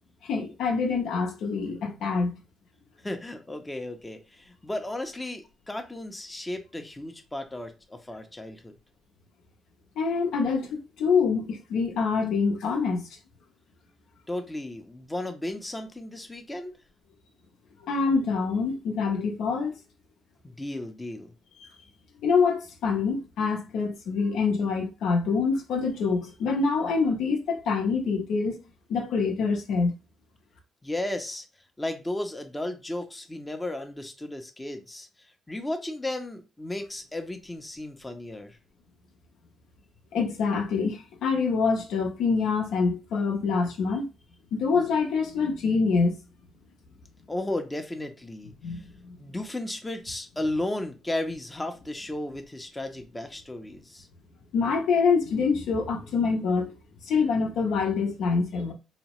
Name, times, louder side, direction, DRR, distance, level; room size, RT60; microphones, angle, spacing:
voice 1, 0.3-2.3 10.0-13.0 17.8-19.8 21.6-21.7 22.2-28.6 28.9-29.9 40.1-44.1 44.5-46.2 48.6-48.8 54.5-56.7 57.0-58.7, left 5 dB, 85° left, 0.6 m, -25 dB
voice 2, 3.0-8.7 14.3-16.8 20.4-21.3 30.8-31.5 31.8-35.1 35.5-38.6 47.3-48.8 49.2-54.1, left 1 dB, 15° left, 0.5 m, -34 dB
2.8 x 2.0 x 3.0 m
cardioid pair, 90°, 0 cm